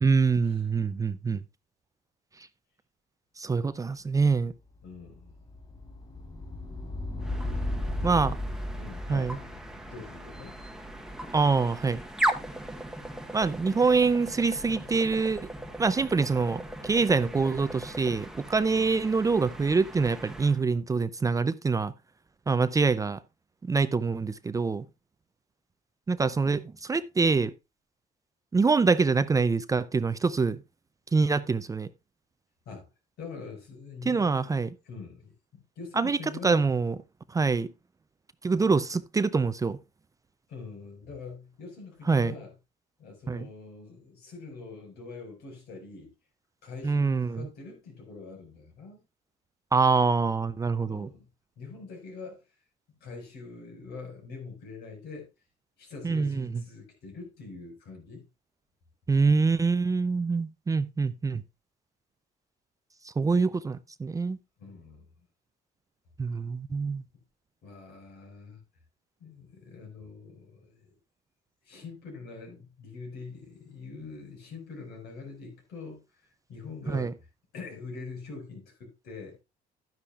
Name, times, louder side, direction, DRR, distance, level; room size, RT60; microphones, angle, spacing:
voice 1, 0.0-1.4 3.4-4.5 8.0-8.3 9.1-9.4 11.3-12.0 13.3-15.5 15.8-21.9 22.5-23.2 23.6-24.8 26.1-27.5 28.5-30.6 31.1-31.9 34.0-34.7 36.0-36.2 36.4-36.9 37.3-37.7 38.4-39.8 42.1-42.3 43.3-43.5 46.8-47.5 49.7-51.1 56.0-56.5 59.1-61.4 63.0-64.4 66.2-67.0 76.9-77.1, right 4 dB, 20° right, 0.5 m, -25 dB
voice 2, 4.8-5.3 8.0-8.3 8.8-9.6 9.9-10.6 18.7-18.9 32.7-32.9 33.2-36.6 40.5-42.5 43.0-46.1 46.6-49.0 50.8-51.3 51.6-52.4 53.0-55.3 55.8-58.3 64.6-65.1 67.6-68.6 69.2-71.0 71.7-76.0 76.5-77.2 77.5-79.4, left 4 dB, 75° left, 5.4 m, -44 dB
sound 1, 4.8-11.7, left 1 dB, 30° left, 5.3 m, -36 dB
sound 2, 7.2-20.6, right 1 dB, 5° right, 1.0 m, -38 dB
12.0 x 9.9 x 2.4 m
cardioid pair, 110°, 17 cm